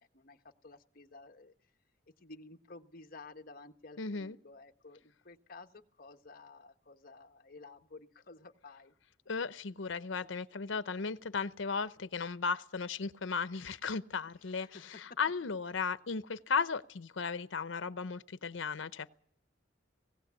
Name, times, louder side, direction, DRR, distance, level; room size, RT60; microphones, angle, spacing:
voice 1, 0.1-1.5 2.2-8.9 14.5-14.8, left 3 dB, 50° left, 1.3 m, -53 dB
voice 2, 4.0-4.4 9.3-19.1, left 5 dB, 85° left, 0.7 m, -36 dB
19.0 x 17.0 x 8.3 m
head